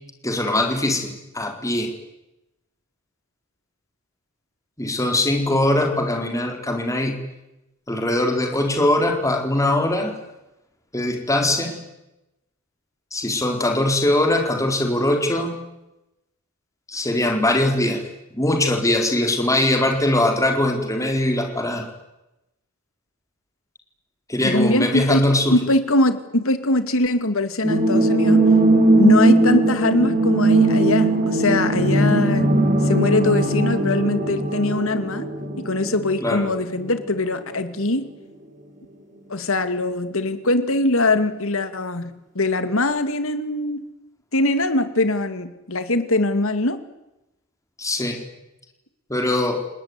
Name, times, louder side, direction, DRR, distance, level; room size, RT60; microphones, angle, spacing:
voice 1, 0.2-1.9 4.8-7.2 7.9-10.1 10.9-11.8 13.1-15.5 16.9-18.0 18.3-21.8 24.3-25.6 36.2-36.5 47.8-48.2 49.1-49.6, left 1 dB, 15° left, 3 dB, 4.2 m, -21 dB
voice 2, 24.4-25.2 25.5-28.5 29.0-32.5 32.8-35.3 35.6-38.1 39.3-43.8 44.3-46.8, left 2 dB, 70° left, 10 dB, 2.3 m, -22 dB
sound 1, 27.6-37.2 37.5-37.6, right 2 dB, 40° right, 6.6 m, -19 dB
29.5 x 19.0 x 9.8 m, 0.95 s
head